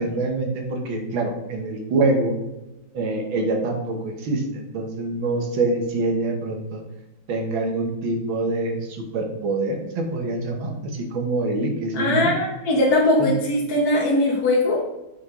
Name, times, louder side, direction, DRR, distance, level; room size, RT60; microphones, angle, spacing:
voice 1, 0.0-2.3 2.9-6.8 7.3-12.3 13.2-13.3, right 2 dB, 80° right, 3 dB, 2.0 m, -25 dB
voice 2, 11.9-14.8, left 1 dB, 55° left, -3 dB, 1.5 m, -20 dB
6.3 x 5.7 x 3.7 m, 0.98 s
omnidirectional pair, 2.1 m